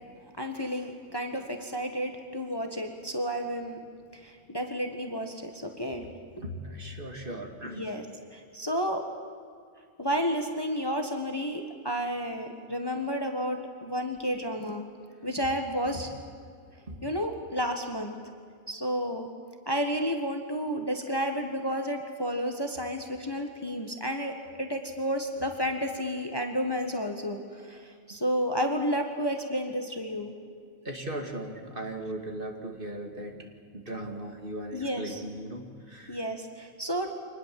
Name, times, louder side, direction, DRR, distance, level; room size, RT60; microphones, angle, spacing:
voice 1, 0.4-3.8 4.1-6.1 7.6-8.1 8.3-9.1 10.0-14.9 15.2-16.1 17.0-18.2 18.7-19.3 19.6-30.3 34.7-35.2 36.1-37.1, equal, 15° left, 4 dB, 1.6 m, -31 dB
voice 2, 6.4-7.9 15.9-16.0 16.9-17.0 30.8-33.5 33.7-36.2, right 1 dB, 40° right, 3 dB, 2.5 m, -38 dB
26.0 x 20.0 x 7.8 m, 2.2 s
omnidirectional pair, 1.5 m